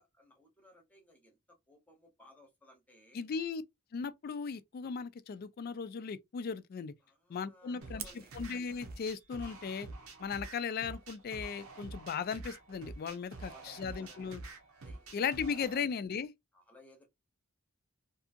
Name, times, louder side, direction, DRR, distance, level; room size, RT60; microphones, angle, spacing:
voice 1, 0.0-3.2 7.0-8.3 13.2-14.4 14.8-15.2 15.5-15.7 16.5-17.1, left 1 dB, 5° left, 0.7 m, -61 dB
voice 2, 3.1-3.6 3.9-6.9 7.3-8.0 8.3-9.9 10.2-14.4 15.1-16.3, left 6 dB, 45° left, 0.3 m, -37 dB
sound 1, 7.8-15.8, right 2 dB, 90° right, 0.8 m, -47 dB
Fire, 8.0-9.1, right 9 dB, 45° right, 0.5 m, -47 dB
2.7 x 2.5 x 2.5 m
head